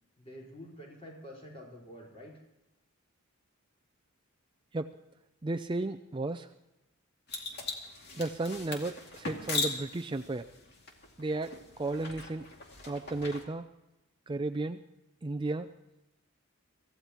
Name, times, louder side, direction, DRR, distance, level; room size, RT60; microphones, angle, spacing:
voice 1, 0.2-2.4, equal, 25° left, -3 dB, 4.7 m, -48 dB
voice 2, 5.4-6.5 8.1-10.5 11.2-12.5 12.9-13.7 14.3-14.8 15.2-15.7, right 2 dB, 20° right, 9 dB, 0.4 m, -34 dB
sound 1, 7.3-13.4, left 3 dB, 50° left, 2.4 m, -39 dB
24.5 x 15.5 x 3.0 m, 0.95 s
head